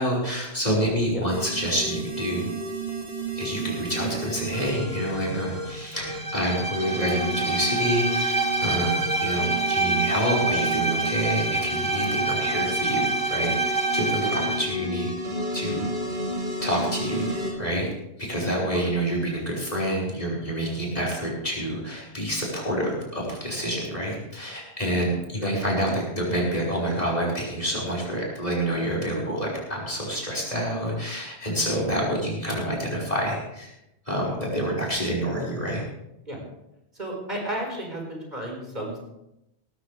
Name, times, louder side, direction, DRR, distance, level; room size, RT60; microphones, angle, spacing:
voice 1, 0.0-2.5 3.4-15.1 15.5-15.8 16.6-17.2 17.6-17.9 18.2-33.7 34.1-35.8, equal, 35° left, -3 dB, 5.3 m, -27 dB
sound 1, 1.3-6.2 6.8-17.5, right 1 dB, 60° right, 3.4 m, -32 dB
Bowed string instrument, 6.1-14.7, right 3 dB, 20° right, 0.9 m, -26 dB
voice 2, 36.9-39.0, right 1 dB, 40° right, 0 dB, 4.9 m, -33 dB
18.5 x 13.5 x 3.4 m, 0.86 s
omnidirectional pair, 1.1 m